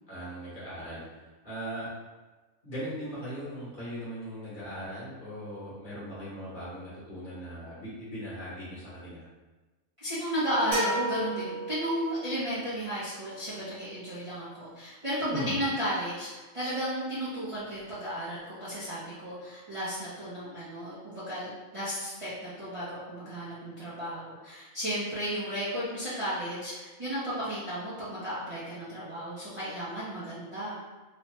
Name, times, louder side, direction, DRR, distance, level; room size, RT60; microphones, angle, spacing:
voice 1, 0.1-1.0 1.4-1.9 2.6-9.2 15.3-15.6, equal, 40° left, -9 dB, 1.1 m, -39 dB
voice 2, 10.0-30.8, equal, 30° right, -12 dB, 0.6 m, -34 dB
sound 1, 10.7-12.5, right 1 dB, 65° right, 1.3 m, -32 dB
3.1 x 2.1 x 2.9 m, 1.2 s
omnidirectional pair, 1.4 m